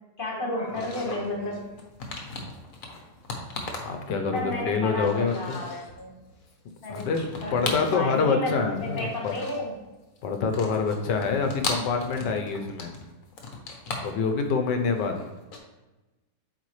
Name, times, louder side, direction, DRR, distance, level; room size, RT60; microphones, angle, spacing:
voice 1, 0.2-1.7 4.3-6.2 6.8-7.1 7.4-9.7, left 1 dB, 30° left, -2 dB, 1.7 m, -32 dB
sound 1, 0.7-4.7 4.9-6.0 6.3-8.3 8.6-9.8 10.2-15.6, left 3 dB, 55° left, 1.3 m, -37 dB
voice 2, 3.8-5.6 6.9-7.2 7.5-9.3 10.2-12.9 14.0-15.2, left 5 dB, 75° left, 5 dB, 1.4 m, -26 dB
8.4 x 4.5 x 3.2 m, 1.1 s
omnidirectional pair, 1.9 m